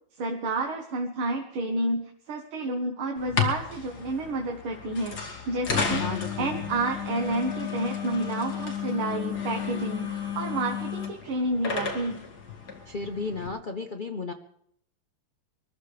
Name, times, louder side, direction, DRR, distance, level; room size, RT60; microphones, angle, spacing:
voice 1, 0.2-6.1 6.4-12.2, right 2 dB, 85° right, 3 dB, 2.1 m, -30 dB
sound 1, 3.2-13.5, left 6 dB, 50° left, 2.4 m, -33 dB
voice 2, 5.8-6.7 12.9-14.3, left 4 dB, 85° left, 3 dB, 0.4 m, -33 dB
24.5 x 13.5 x 3.3 m, 0.68 s
omnidirectional pair, 2.2 m